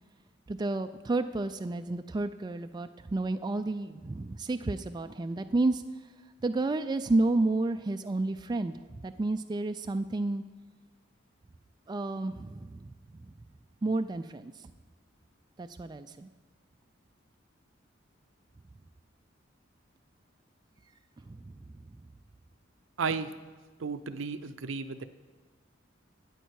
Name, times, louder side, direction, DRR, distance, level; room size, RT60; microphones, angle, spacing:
voice 1, 0.5-5.8 6.4-10.4 11.9-12.9 13.8-14.7 15.6-16.3 21.2-21.5 21.9-22.0, right 2 dB, 20° right, 8 dB, 0.3 m, -31 dB
voice 2, 23.0-23.3 23.8-25.0, right 5 dB, 70° right, 12 dB, 0.5 m, -33 dB
12.0 x 8.9 x 4.7 m, 1.3 s
head